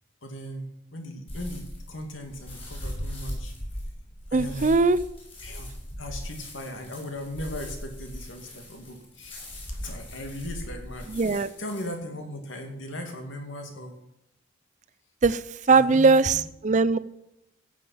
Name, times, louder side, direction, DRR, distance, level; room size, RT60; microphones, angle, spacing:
voice 1, 0.2-3.5 4.3-4.7 5.4-5.7 6.0-9.3 9.7-14.0 15.7-16.4, left 1 dB, 85° left, 4 dB, 2.4 m, -38 dB
sound 1, 1.3-11.9, equal, 30° left, 5.5 m, -39 dB
voice 2, 4.3-5.0 11.1-11.5 15.2-17.0, right 4 dB, 40° right, 16 dB, 0.5 m, -20 dB
14.5 x 7.4 x 5.7 m, 0.84 s
head